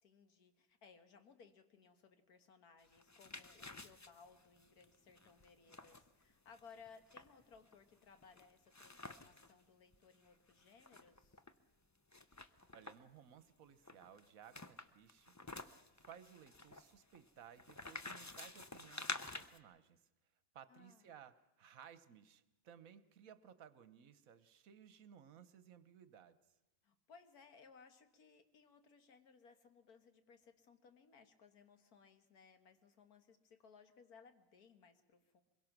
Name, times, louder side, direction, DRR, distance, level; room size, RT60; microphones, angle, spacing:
voice 1, 0.0-11.4 20.7-21.1 26.8-35.4, left 5 dB, 85° left, 8 dB, 1.9 m, -63 dB
sound 1, 2.8-9.5 9.9-10.0 10.2-11.5 12.1-13.2 13.8-19.6, left 2 dB, 25° left, 0.3 m, -50 dB
voice 2, 12.7-20.1 20.5-26.4, right 8 dB, 70° right, 13 dB, 1.3 m, -60 dB
24.0 x 22.0 x 6.0 m, 1.0 s
omnidirectional pair, 1.6 m